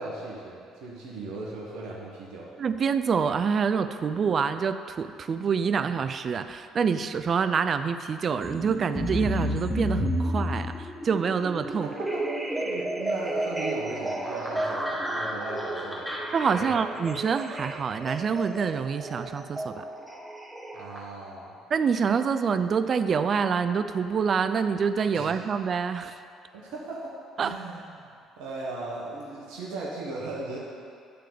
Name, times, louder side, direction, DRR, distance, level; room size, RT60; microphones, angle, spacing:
voice 1, 0.0-2.5 11.8-12.2 12.6-16.3 16.6-16.7 20.7-21.6 25.1-25.3 26.5-27.1 27.4-30.6, right 2 dB, 75° right, -5 dB, 1.4 m, -37 dB
voice 2, 2.6-11.9 16.3-19.8 21.7-26.2 27.4-27.6, right 6 dB, 45° right, 11 dB, 0.5 m, -26 dB
sound 1, 8.4-21.0, right 1 dB, 5° right, 1.1 m, -31 dB
10.5 x 3.8 x 7.0 m, 2.4 s
hypercardioid pair, 65°, 0 cm